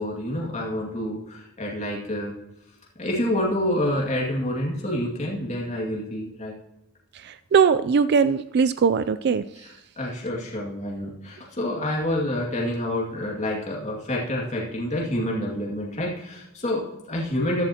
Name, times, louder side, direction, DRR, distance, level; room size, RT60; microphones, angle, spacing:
voice 1, 0.0-2.3 3.0-6.5 9.6-17.7, left 1 dB, 30° left, -3 dB, 2.2 m, -28 dB
voice 2, 7.2-9.4, right 6 dB, 50° right, 13 dB, 0.3 m, -20 dB
14.0 x 11.5 x 2.9 m, 0.91 s
head